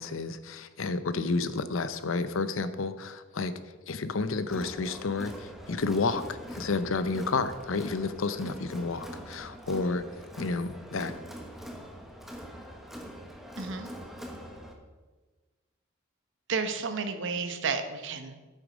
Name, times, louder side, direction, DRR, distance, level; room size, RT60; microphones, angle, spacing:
voice 1, 0.0-3.5 3.9-10.0 10.4-11.1, left 3 dB, 65° left, 12 dB, 0.6 m, -31 dB
Crowd, 4.5-14.7, equal, ahead, 1.1 m, -43 dB
voice 2, 13.6-13.9 16.5-18.4, right 5 dB, 60° right, 8 dB, 0.9 m, -32 dB
8.8 x 8.1 x 5.1 m, 1.3 s
head